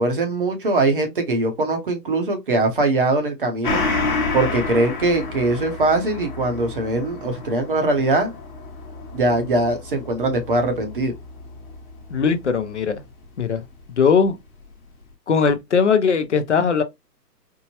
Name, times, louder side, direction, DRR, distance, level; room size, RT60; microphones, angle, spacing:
voice 1, 0.0-3.8 4.3-8.4 9.1-11.1, right 2 dB, 35° right, 0.7 m, -21 dB
Gong, 3.6-12.6 12.9-13.0, left 3 dB, 30° left, 1.1 m, -30 dB
voice 2, 12.1-13.0 13.4-13.6 13.9-14.4 15.3-16.8, left 6 dB, 45° left, 0.5 m, -19 dB
4.5 x 2.1 x 2.7 m
hypercardioid pair, 165°, 50 cm